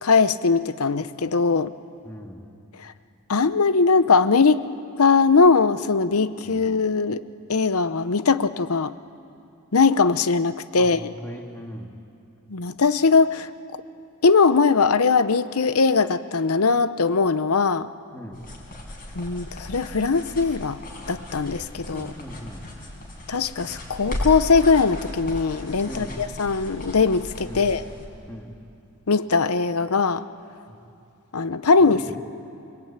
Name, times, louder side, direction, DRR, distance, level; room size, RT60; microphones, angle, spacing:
voice 1, 0.0-1.7 2.8-2.9 3.3-4.7 5.0-7.2 7.5-8.9 9.7-11.1 12.5-13.5 14.2-17.9 19.1-20.8 21.1-22.1 23.3-27.8 29.1-30.2 31.3-32.2, left 4 dB, 85° left, 13 dB, 0.8 m, -20 dB
voice 2, 2.0-2.4 6.5-6.6 10.8-11.9 18.1-18.4 21.9-22.6 25.9-26.2 27.4-27.6 28.3-28.5 30.7-30.8 31.9-32.1, equal, 10° left, 1 dB, 2.4 m, -38 dB
sound 1, 18.3-28.0, left 1 dB, 45° left, 5.3 m, -36 dB
28.5 x 21.0 x 8.9 m, 2.6 s
head